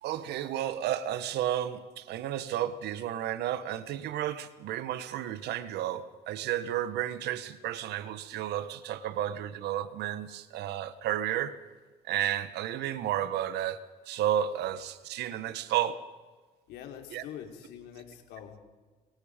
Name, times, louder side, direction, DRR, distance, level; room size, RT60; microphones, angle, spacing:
voice 1, 0.0-11.6 12.0-13.8 14.1-16.0 17.1-17.2, right 11 dB, 75° right, 1.4 m, -32 dB
voice 2, 16.7-18.6, left 9 dB, 85° left, 4.1 m, -44 dB
25.0 x 23.0 x 5.2 m
cardioid pair, 110°, 17 cm